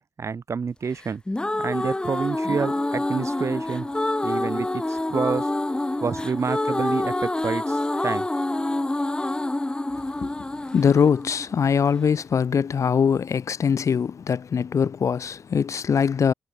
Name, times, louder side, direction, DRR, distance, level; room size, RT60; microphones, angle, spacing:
voice 1, 0.2-1.2 1.6-3.9 4.2-5.5 6.0-8.3, right 5 dB, 50° right, 5.0 m, -28 dB
sound 1, 1.0-12.1, left 2 dB, 15° left, 1.0 m, -27 dB
voice 2, 10.1-16.3, left 6 dB, 60° left, 1.0 m, -22 dB
cardioid pair, 65°, 6 cm